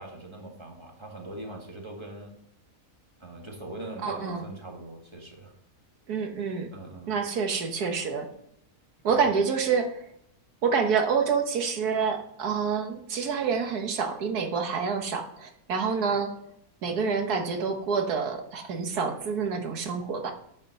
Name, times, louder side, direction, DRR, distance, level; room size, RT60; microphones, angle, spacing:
voice 1, 0.0-2.3 3.2-5.5 6.7-7.2 9.1-9.3, right 2 dB, 20° right, 1 dB, 1.6 m, -41 dB
voice 2, 4.0-4.4 6.1-6.7 7.1-8.3 9.0-10.0 10.6-16.3 16.8-20.3, right 5 dB, 85° right, 4 dB, 1.7 m, -27 dB
9.4 x 5.2 x 6.5 m, 0.73 s
omnidirectional pair, 1.6 m